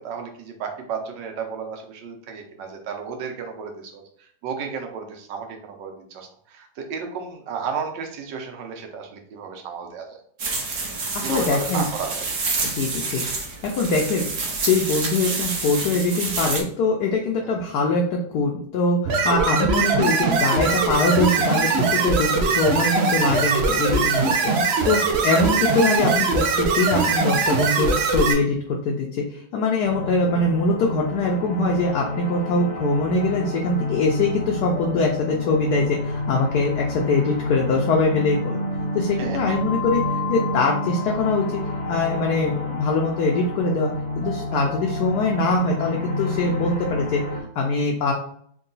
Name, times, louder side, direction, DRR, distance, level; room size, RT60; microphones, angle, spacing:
voice 1, 0.0-10.2 11.2-12.2 13.0-13.2 17.4-17.5 19.3-19.4 25.1-25.2 39.2-39.6 44.5-44.6, right 6 dB, 90° right, 3 dB, 1.4 m, -33 dB
sound 1, 10.4-16.6, right 3 dB, 55° right, 1.0 m, -28 dB
voice 2, 11.1-11.9 12.6-13.2 13.6-14.3 14.6-24.5 24.8-38.6 38.9-41.6 41.9-47.2 47.6-48.1, left 3 dB, 70° left, 0 dB, 1.1 m, -23 dB
sound 2, 19.1-28.3, right 4 dB, 75° right, 0.6 m, -21 dB
sound 3, 29.8-47.4, left 2 dB, 45° left, 0.9 m, -29 dB
3.7 x 2.3 x 3.9 m, 0.63 s
omnidirectional pair, 1.9 m